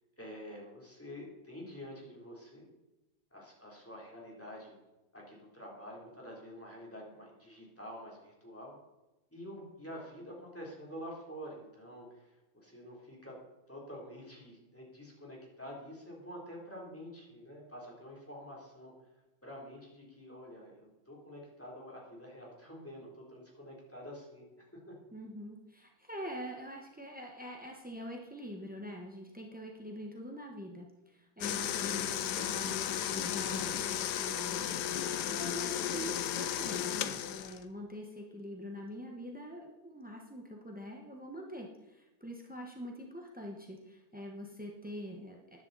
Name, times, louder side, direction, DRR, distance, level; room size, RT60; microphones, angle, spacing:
voice 1, 0.2-2.6 3.3-4.8 5.1-8.8 9.3-13.4 13.7-18.9 19.4-24.9, equal, 5° left, -3 dB, 3.2 m, -48 dB
voice 2, 25.1-34.7 35.0-45.6, equal, 10° right, 1 dB, 0.4 m, -44 dB
sound 1, 31.4-37.6, left 10 dB, 70° left, 1.0 m, -34 dB
13.5 x 10.5 x 4.1 m, 1.0 s
omnidirectional pair, 2.3 m